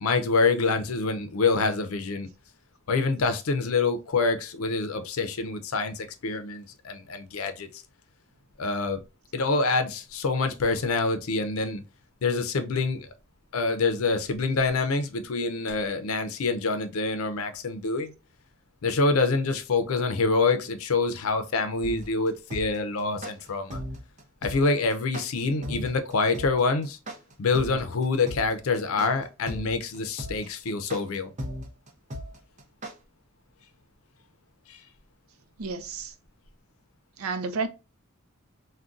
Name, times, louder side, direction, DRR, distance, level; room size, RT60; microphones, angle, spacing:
voice 1, 0.0-2.3 2.9-7.8 8.6-9.0 9.3-11.8 12.2-13.1 13.5-18.1 18.8-23.8 24.4-27.0 27.4-31.3 34.7-34.8, left 3 dB, 90° left, 0.5 m, -26 dB
sound 1, 21.8-32.9, equal, 35° right, 0.6 m, -36 dB
voice 2, 35.6-36.1 37.2-37.7, right 4 dB, 85° right, 0.5 m, -31 dB
3.6 x 2.2 x 2.5 m
head